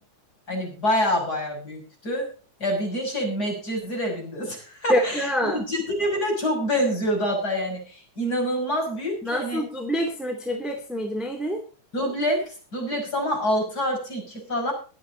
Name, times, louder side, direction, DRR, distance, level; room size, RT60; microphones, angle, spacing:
voice 1, 0.5-2.3 2.6-9.6 11.9-14.7, equal, 25° left, 1 dB, 6.4 m, -26 dB
voice 2, 4.9-5.6 9.2-11.6, equal, ahead, 3 dB, 2.0 m, -26 dB
22.5 x 8.3 x 4.0 m, 0.37 s
omnidirectional pair, 3.8 m